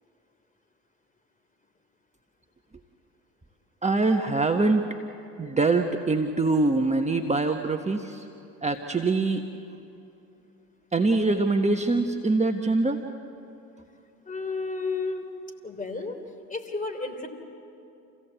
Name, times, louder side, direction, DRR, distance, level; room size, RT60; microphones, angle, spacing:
voice 1, 3.8-4.8 5.4-8.3 8.6-9.4 10.9-13.0, right 3 dB, 15° right, 4 dB, 1.3 m, -24 dB
voice 2, 14.3-15.2 15.6-16.2 16.5-17.3, left 3 dB, 20° left, 6 dB, 3.4 m, -31 dB
28.5 x 16.0 x 8.1 m, 2.7 s
hypercardioid pair, 60°, 41 cm